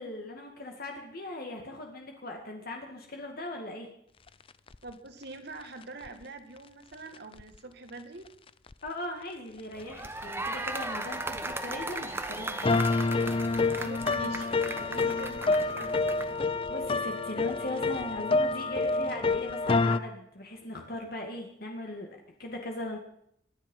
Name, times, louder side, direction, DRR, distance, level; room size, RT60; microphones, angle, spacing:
voice 1, 0.0-3.9 8.8-12.8 16.7-23.0, left 1 dB, 50° left, 1 dB, 2.3 m, -39 dB
sound 1, 4.7-4.8 6.0-6.1 7.3-7.4 8.7-8.8 10.0-10.1 11.3-11.4 12.6-20.0, left 3 dB, 30° left, 0.5 m, -28 dB
voice 2, 4.8-8.3 13.7-16.0, right 2 dB, 60° right, 7 dB, 2.1 m, -44 dB
sound 2, 9.7-16.4, right 2 dB, 10° right, 1.1 m, -37 dB
25.0 x 10.5 x 5.6 m, 0.71 s
head